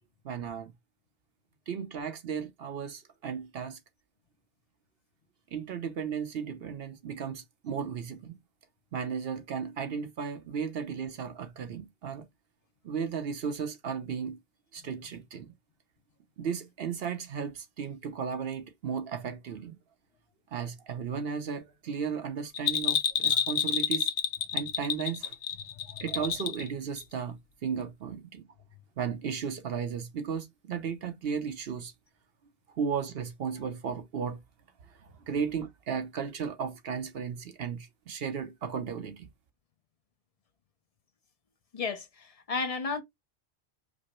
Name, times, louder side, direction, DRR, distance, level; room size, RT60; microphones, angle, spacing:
voice 1, 0.2-0.7 1.7-3.8 5.5-8.4 8.9-12.2 12.8-14.4 14.7-15.5 16.4-19.7 20.5-24.1 24.5-25.3 25.9-28.5 29.0-31.9 32.7-34.4 34.9-39.3, right 7 dB, 65° right, 0.8 m, -35 dB
Bell, 22.5-26.7 27.0-27.1, left 7 dB, 75° left, 0.9 m, -29 dB
voice 2, 41.7-43.0, left 4 dB, 40° left, 0.6 m, -33 dB
5.1 x 2.0 x 2.9 m
omnidirectional pair, 1.1 m